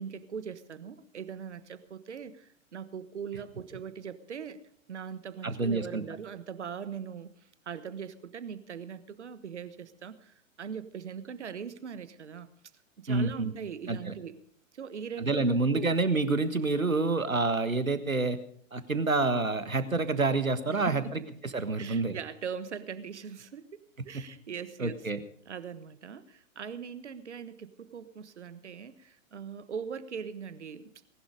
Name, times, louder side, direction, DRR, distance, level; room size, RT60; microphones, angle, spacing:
voice 1, 0.0-4.6 4.9-7.3 7.6-12.5 13.0-14.4 14.7-15.9 20.7-21.1 21.8-25.0 25.4-31.0, right 7 dB, 60° right, 13 dB, 1.4 m, -41 dB
voice 2, 5.4-6.0 13.1-13.5 13.9-14.1 15.2-18.4 18.7-21.2 21.5-22.2 24.8-25.2, right 3 dB, 80° right, 11 dB, 1.7 m, -28 dB
19.5 x 11.5 x 5.1 m, 0.62 s
figure-of-eight pair, 120°, 40 cm